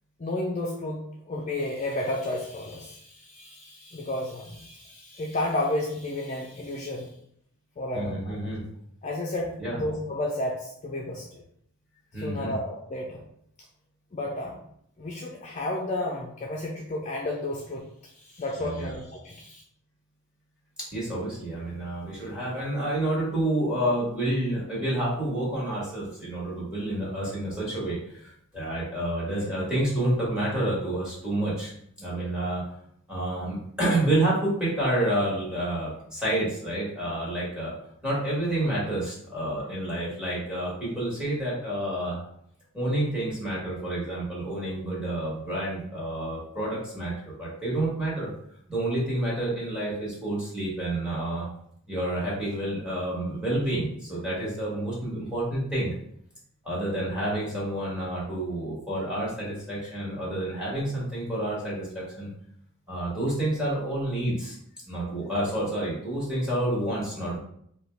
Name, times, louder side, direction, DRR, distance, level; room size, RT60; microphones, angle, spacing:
voice 1, 0.2-7.1 7.8-8.5 9.0-11.4 12.2-13.2 14.1-14.6 15.0-17.9 18.1-19.6, left 1 dB, 35° left, -1 dB, 0.4 m, -32 dB
voice 2, 7.9-8.6 9.6-9.8 12.1-12.5 18.6-18.9 20.9-31.7 32.0-32.6 33.1-37.7 38.0-42.2 42.7-48.3 48.7-51.5 51.9-55.9 56.6-62.3 62.9-64.6 64.9-67.4, right 1 dB, 5° right, -6 dB, 1.6 m, -29 dB
4.8 x 2.3 x 3.3 m, 0.70 s
head